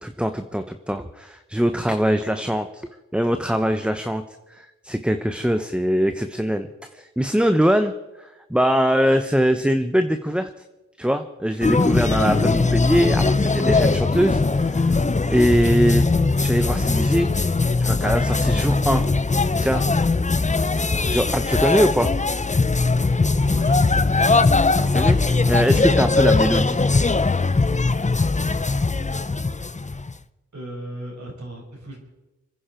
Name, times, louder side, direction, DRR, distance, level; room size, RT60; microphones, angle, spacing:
voice 1, 0.0-2.7 3.1-4.2 4.5-7.9 8.2-10.5 11.0-14.9 15.3-16.1 16.4-17.5 17.8-19.1 19.6-19.8 21.1-22.1 24.9-25.2 25.5-26.8, equal, 5° right, 8 dB, 1.0 m, -22 dB
sound 1, 11.6-30.2, left 3 dB, 25° left, 0.7 m, -20 dB
sound 2, 12.1-15.3, right 3 dB, 30° right, 4.3 m, -40 dB
voice 2, 23.1-23.9 30.5-32.0, right 1 dB, 65° right, -1 dB, 5.4 m, -38 dB
27.0 x 10.0 x 4.5 m, 1.1 s
cardioid pair, 40°, 31 cm